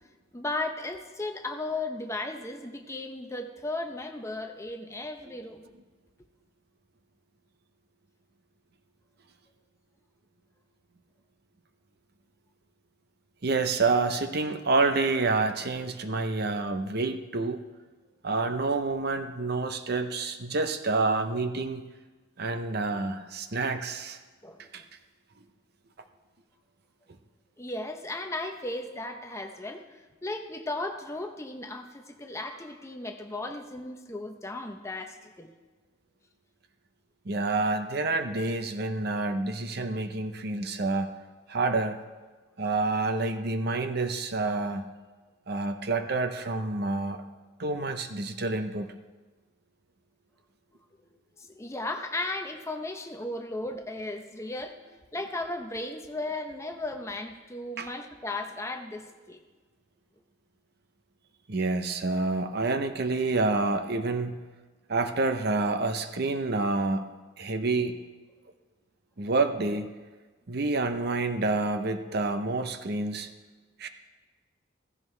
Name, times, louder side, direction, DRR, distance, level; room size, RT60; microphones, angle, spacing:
voice 1, 0.3-5.6 24.4-24.9 27.6-35.5 51.4-59.4, left 2 dB, 15° left, 5 dB, 0.8 m, -36 dB
voice 2, 13.4-17.6 18.2-21.8 22.4-24.2 24.7-24.8 37.2-41.1 41.5-42.0 42.6-44.8 45.5-47.2 47.6-48.9 57.8-57.9 61.5-64.4 64.9-67.1 67.4-68.0 69.2-70.0 70.5-73.3 73.8-73.9, right 3 dB, 55° right, 8 dB, 0.7 m, -28 dB
16.0 x 15.5 x 3.3 m, 1.3 s
head